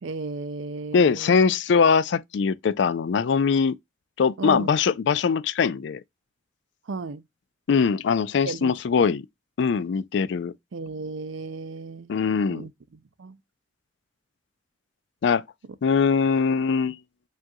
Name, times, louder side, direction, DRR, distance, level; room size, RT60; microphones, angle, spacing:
voice 1, 0.0-1.4 4.4-4.8 6.9-7.2 8.4-9.1 10.7-12.2 12.5-13.4, right 3 dB, 75° right, 0.5 m, -35 dB
voice 2, 0.9-3.8 4.2-6.0 7.7-9.3 9.6-10.5 12.1-12.7 15.2-15.4 15.8-17.0, left 5 dB, 60° left, 0.3 m, -22 dB
7.4 x 2.5 x 2.6 m
head